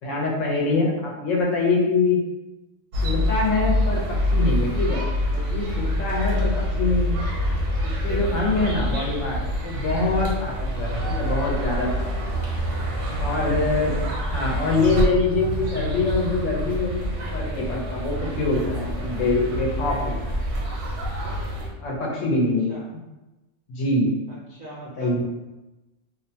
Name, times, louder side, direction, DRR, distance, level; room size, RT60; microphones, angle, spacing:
voice 1, 0.0-2.2 3.0-5.0 5.3-6.5 6.8-7.2 8.0-12.0 12.3-12.4 13.2-13.9 14.3-20.4 21.8-22.7 23.7-24.1 25.0-25.2, left 3 dB, 85° left, -3 dB, 1.0 m, -24 dB
sound 1, 2.9-21.7, equal, 75° right, 1.0 m, -26 dB
voice 2, 24.3-25.2, equal, 55° right, -6 dB, 0.5 m, -41 dB
2.6 x 2.1 x 2.7 m, 1.0 s
omnidirectional pair, 1.3 m